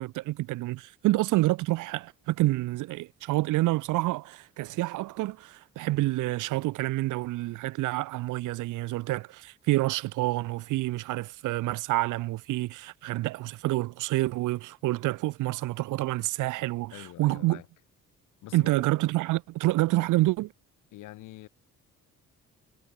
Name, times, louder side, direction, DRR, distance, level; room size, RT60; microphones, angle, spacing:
voice 1, 0.0-17.6 18.5-20.5, right 18 dB, 85° right, 0.6 m, -28 dB
voice 2, 16.9-17.7 18.4-18.7 20.9-21.5, left 16 dB, 85° left, 1.7 m, -45 dB
cardioid pair, 90°, 30 cm